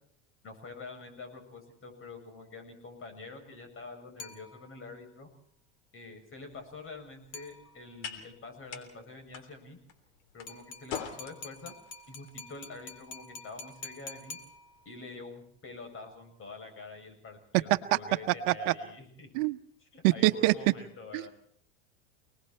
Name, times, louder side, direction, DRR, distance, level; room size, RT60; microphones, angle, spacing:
voice 1, 0.4-5.3 5.9-9.8 10.3-11.7 12.1-14.4 14.8-19.3 19.8-21.3, left 3 dB, 35° left, 6 dB, 7.7 m, -46 dB
sound 1, 4.2-5.0 7.3-8.1 10.5-15.1, left 3 dB, 50° left, 3.3 m, -47 dB
sound 2, 6.5-14.9, left 7 dB, 70° left, 3.4 m, -47 dB
voice 2, 20.0-20.5 21.1-21.3, right 19 dB, 65° right, 9 dB, 1.2 m, -24 dB
30.0 x 20.0 x 4.5 m, 0.63 s
hypercardioid pair, 100°, 37 cm